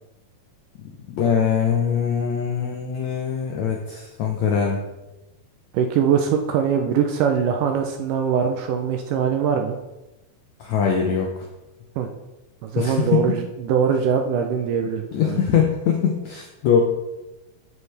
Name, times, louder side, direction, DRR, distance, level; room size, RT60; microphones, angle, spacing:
voice 1, 1.1-4.8 10.6-11.4 12.8-13.4 15.1-16.8, left 7 dB, 80° left, 1 dB, 1.6 m, -22 dB
voice 2, 5.7-9.8 12.0-12.1 12.6-15.4, right 7 dB, 80° right, 4 dB, 1.9 m, -22 dB
13.0 x 4.8 x 3.3 m, 1.0 s
omnidirectional pair, 4.2 m